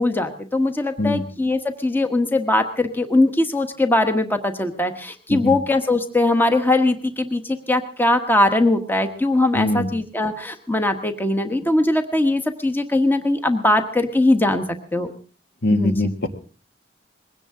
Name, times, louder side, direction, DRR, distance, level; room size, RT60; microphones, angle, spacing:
voice 1, 0.0-14.6 14.9-15.1 15.7-15.9, left 2 dB, 10° left, 7 dB, 1.2 m, -20 dB
voice 2, 9.5-9.9 15.6-16.3, left 1 dB, 60° left, 6 dB, 2.1 m, -22 dB
21.0 x 17.0 x 3.7 m, 0.38 s
head